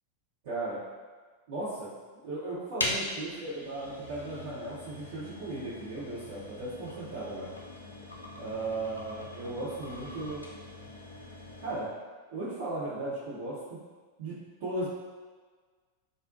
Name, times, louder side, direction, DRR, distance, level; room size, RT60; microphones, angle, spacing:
voice 1, 0.4-0.8 1.5-1.9 2.2-7.5 8.4-10.4 11.6-11.9 12.3-13.8 14.2-14.9, right 2 dB, 55° right, -12 dB, 0.7 m, -36 dB
sound 1, 2.8-11.9, left 1 dB, 80° left, 0.3 m, -41 dB
2.5 x 2.1 x 2.4 m, 1.4 s
figure-of-eight pair, 90°, 0 cm